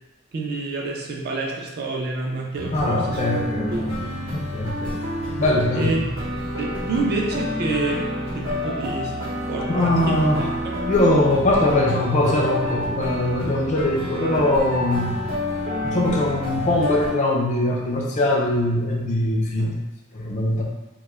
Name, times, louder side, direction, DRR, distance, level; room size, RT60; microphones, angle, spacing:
voice 1, 0.3-3.3 3.7-4.2 4.8-4.9 5.7-6.0 6.6-8.1 8.3-9.2 9.5-10.7 19.6-19.8, right 3 dB, 45° right, -1 dB, 0.3 m, -28 dB
sound 1, 2.5-17.1, left 1 dB, 65° right, 0.8 m, -28 dB
voice 2, 2.7-3.9 4.3-4.8 5.4-6.0 9.7-10.6 10.8-15.2 15.8-19.7 20.1-20.6, left 1 dB, 35° left, -1 dB, 0.3 m, -21 dB
2.2 x 2.0 x 3.0 m, 1.0 s
head